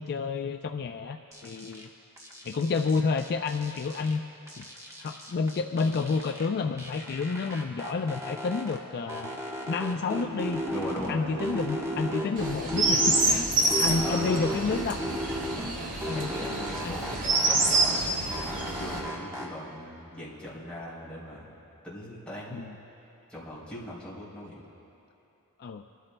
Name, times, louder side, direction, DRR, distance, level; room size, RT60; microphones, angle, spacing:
voice 1, 0.0-1.9 2.4-4.2 4.6-4.7 5.0-9.4 9.7-10.6 11.1-15.0 15.6-16.3 16.8-16.9 22.5-22.7 25.6-25.8, left 4 dB, 45° left, 6 dB, 0.3 m, -30 dB
sound 1, 1.3-1.8 2.2-4.2 4.5-6.5 6.8-8.8 9.1-11.1 11.4-13.4 13.7-15.7 16.0-18.0 18.3-19.5, equal, 15° right, 1.1 m, -35 dB
sound 2, 10.1-19.1, right 2 dB, 90° right, 0.7 m, -42 dB
voice 2, 10.6-11.6 13.9-14.8 16.1-21.6 21.8-22.8 23.3-24.6, left 1 dB, 5° left, -9 dB, 3.2 m, -40 dB
Chirp tweet, 12.4-19.0, right 2 dB, 40° right, 1.5 m, -27 dB
26.0 x 13.0 x 2.2 m, 3.0 s
head